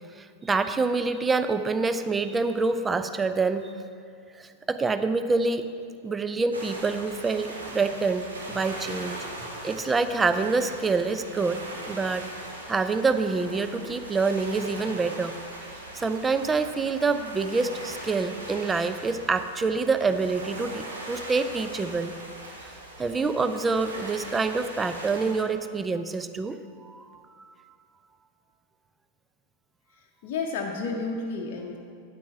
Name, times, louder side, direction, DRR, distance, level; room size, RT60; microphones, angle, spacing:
voice 1, 0.2-3.7 4.3-5.7 6.0-9.2 9.6-11.6 11.9-12.3 12.7-15.3 15.9-22.1 22.6-22.7 23.0-27.5, right 4 dB, 15° right, 10 dB, 0.5 m, -26 dB
sound 1, 6.5-25.4, right 1 dB, 75° right, 1.5 m, -40 dB
voice 2, 30.2-31.8, left 4 dB, 45° left, 0 dB, 0.8 m, -31 dB
9.1 x 8.5 x 4.6 m, 2.3 s
figure-of-eight pair, 90°, 0 cm